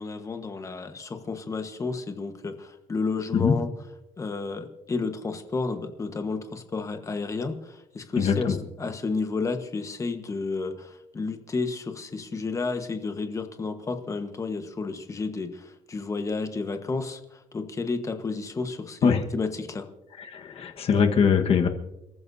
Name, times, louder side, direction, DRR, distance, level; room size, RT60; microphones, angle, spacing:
voice 1, 0.0-3.7 4.2-19.9, left 4 dB, 20° left, 7 dB, 1.3 m, -31 dB
voice 2, 8.2-8.5 19.0-19.2 20.2-21.7, left 6 dB, 45° left, 4 dB, 1.4 m, -22 dB
29.0 x 14.0 x 2.7 m, 0.92 s
cardioid pair, 160°, 14 cm